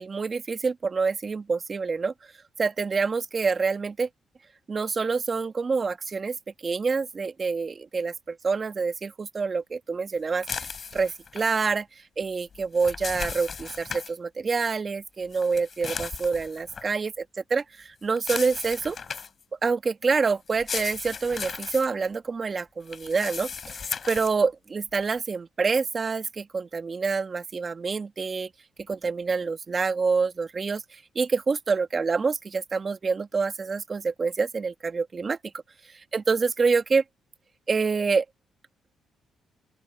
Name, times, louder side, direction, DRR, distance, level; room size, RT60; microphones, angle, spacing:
voice 1, 0.0-2.1 2.6-4.1 4.7-6.4 6.6-11.9 12.2-17.2 17.5-19.0 19.6-28.5 28.9-35.4 35.9-37.0 37.7-38.2, right 4 dB, 35° right, 1.5 m, -27 dB
sound 1, 10.4-11.6 12.5-14.1 15.3-16.9 18.2-19.4 20.5-21.9 22.9-24.3, left 6 dB, 45° left, 4.2 m, -36 dB
open air
cardioid pair, 90°, 0 cm